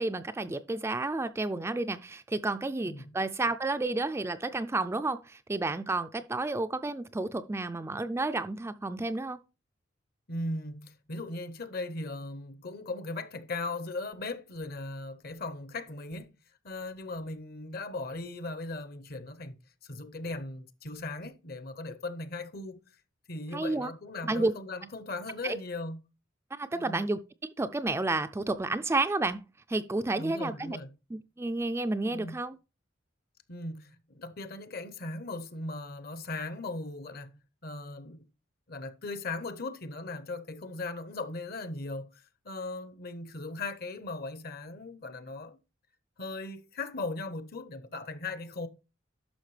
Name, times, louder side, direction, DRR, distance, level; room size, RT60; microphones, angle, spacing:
voice 1, 0.0-9.4 23.5-23.9 24.3-24.5 25.4-25.6 26.5-27.2 27.6-29.4 29.7-30.8 31.1-32.6, right 2 dB, 15° right, 0.3 m, -31 dB
voice 2, 10.3-16.3 16.6-19.6 19.8-22.8 23.3-26.0 26.7-27.0 30.2-30.9 32.1-32.4 33.5-37.3 37.6-38.2 38.7-45.6 46.2-48.7, left 2 dB, 50° left, 0.8 m, -38 dB
11.5 x 5.8 x 3.3 m
head